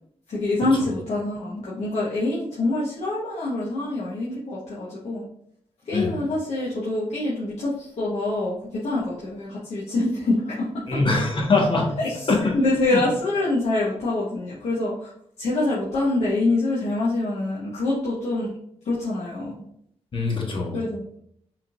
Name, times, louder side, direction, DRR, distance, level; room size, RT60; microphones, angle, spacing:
voice 1, 0.3-5.3 5.8-11.0 12.0-15.1 15.4-18.5 18.8-19.6 20.7-21.2, left 2 dB, 80° left, -7 dB, 1.2 m, -25 dB
voice 2, 10.9-11.9 12.3-12.4 12.9-13.0 20.1-20.7, left 3 dB, 50° left, -1 dB, 1.4 m, -22 dB
5.5 x 3.7 x 2.5 m, 0.69 s
cardioid pair, 80°, 11 cm